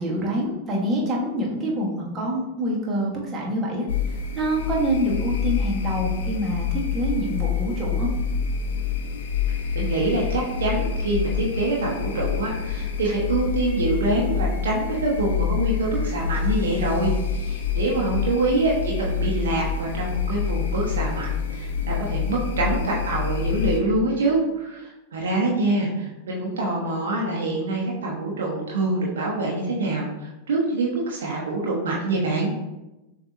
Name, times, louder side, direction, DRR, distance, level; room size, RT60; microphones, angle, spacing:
voice 1, 0.0-3.9 4.3-8.1, equal, 20° right, -3 dB, 1.2 m, -26 dB
sound 1, 3.9-23.8, left 6 dB, 60° left, 0.5 m, -27 dB
voice 2, 9.7-32.5, right 2 dB, 65° right, -3 dB, 0.9 m, -25 dB
6.7 x 2.6 x 2.6 m, 0.98 s
figure-of-eight pair, 90°, 0 cm